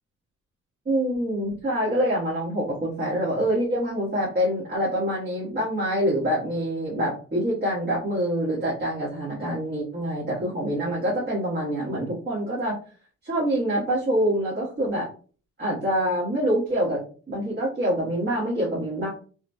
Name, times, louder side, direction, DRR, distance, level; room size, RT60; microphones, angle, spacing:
voice 1, 0.8-12.8 13.2-15.1 15.6-19.1, equal, 35° right, -7 dB, 1.3 m, -26 dB
3.1 x 2.1 x 2.6 m, 0.40 s
cardioid pair, 90°, 30 cm